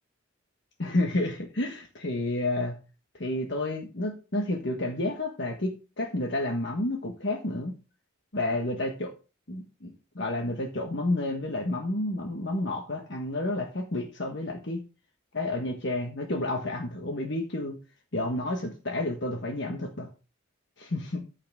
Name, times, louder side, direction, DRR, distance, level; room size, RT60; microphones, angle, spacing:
voice 1, 0.8-2.8 3.1-7.7 8.3-9.1 9.5-14.8 15.3-17.8 18.1-20.1 20.8-21.2, left 2 dB, 55° left, 2 dB, 1.5 m, -30 dB
14.0 x 5.8 x 3.6 m, 0.32 s
head